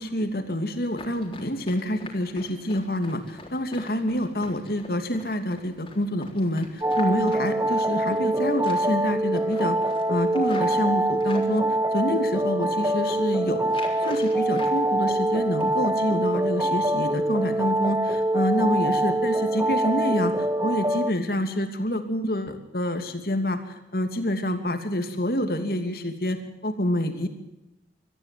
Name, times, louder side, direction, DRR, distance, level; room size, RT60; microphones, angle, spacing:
voice 1, 0.0-13.7 14.0-27.3, left 1 dB, 55° left, 7 dB, 2.8 m, -27 dB
Run, 0.9-8.3 8.6-9.0 9.3-11.5 12.1-12.6 12.9-13.2 13.7-14.8 15.1-15.9 16.3-16.4 16.8-17.2 17.5-17.6 18.1-18.2 18.6-18.7, left 2 dB, 30° left, 3.8 m, -44 dB
sound 1, 6.8-21.1, right 1 dB, 15° right, 1.1 m, -24 dB
23.5 x 14.5 x 7.8 m, 0.94 s
head